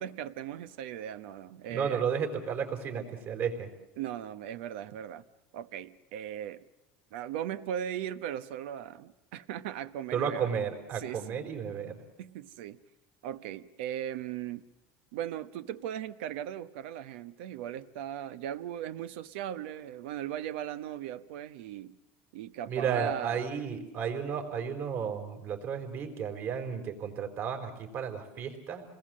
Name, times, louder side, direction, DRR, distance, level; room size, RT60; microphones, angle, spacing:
voice 1, 0.0-2.0 4.0-5.2 5.5-6.6 7.1-10.5 10.9-11.4 12.2-12.8 13.2-14.6 15.1-22.0 22.3-23.4, right 10 dB, 85° right, 1.0 m, -38 dB
voice 2, 1.7-3.7 10.1-12.0 22.7-28.8, right 7 dB, 45° right, 4.3 m, -33 dB
28.5 x 20.5 x 7.6 m
cardioid pair, 145°, 6 cm